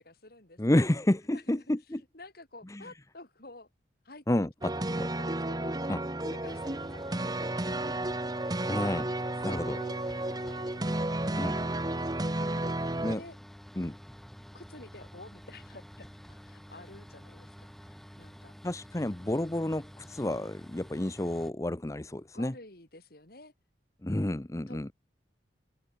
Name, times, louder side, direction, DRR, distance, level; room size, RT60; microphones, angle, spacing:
voice 1, 0.0-0.6 0.9-1.0 1.3-1.6 2.0-3.7 4.0-4.2 4.6-6.0 6.2-7.9 9.4-11.3 12.4-13.4 14.5-18.5 22.3-23.5 24.7-24.9, left 2 dB, 55° left, 3.5 m, -51 dB
voice 2, 0.6-2.0 2.7-2.8 4.3-4.7 5.0-5.1 5.9-6.0 8.7-9.1 9.4-9.8 11.4-11.7 13.0-13.2 13.8-14.0 18.6-22.5 24.0-24.9, left 1 dB, 15° left, 0.7 m, -30 dB
sound 1, 4.6-13.2, right 1 dB, 20° right, 1.4 m, -32 dB
sound 2, 6.5-21.5, equal, ahead, 1.2 m, -49 dB
open air
head